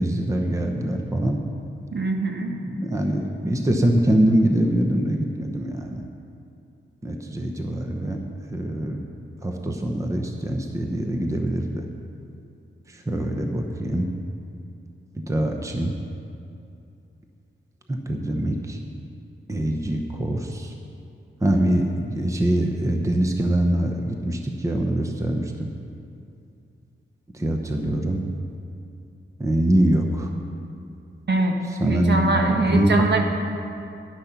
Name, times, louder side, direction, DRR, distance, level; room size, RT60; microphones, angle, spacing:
voice 1, 0.0-1.4 2.4-6.0 7.0-8.2 8.5-9.0 9.4-11.9 12.9-14.1 15.3-15.9 17.9-18.8 19.5-20.7 21.4-25.7 27.3-28.2 29.4-30.3 31.7-33.1, right 1 dB, 15° right, 3 dB, 0.8 m, -24 dB
voice 2, 1.9-2.5 31.3-31.5 31.8-33.2, right 3 dB, 55° right, 2 dB, 1.3 m, -22 dB
10.5 x 10.5 x 5.9 m, 2.6 s
wide cardioid pair, 135°, 21 cm